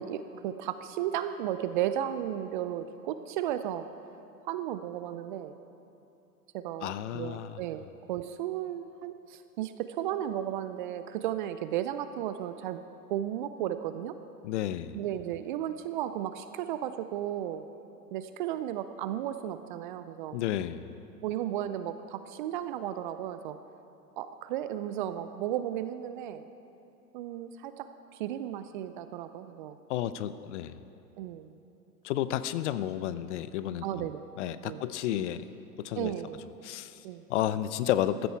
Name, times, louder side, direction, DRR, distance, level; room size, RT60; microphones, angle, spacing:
voice 1, 0.0-3.9 4.5-5.5 6.5-7.8 8.1-12.8 13.1-14.2 14.9-17.6 18.1-20.4 21.2-23.6 24.2-26.4 27.1-27.9 28.2-29.8 31.2-31.5 33.8-34.2 34.5-34.8 36.0-36.4 37.0-37.2, right 11 dB, 35° right, 11 dB, 0.4 m, -34 dB
voice 2, 6.8-7.6 14.4-15.0 20.3-20.9 29.9-30.8 32.0-34.1 34.4-35.4 35.8-36.1 36.6-37.0 37.3-38.3, left 12 dB, 50° left, 14 dB, 0.6 m, -31 dB
15.5 x 13.0 x 4.6 m, 2.8 s
hypercardioid pair, 105°, 48 cm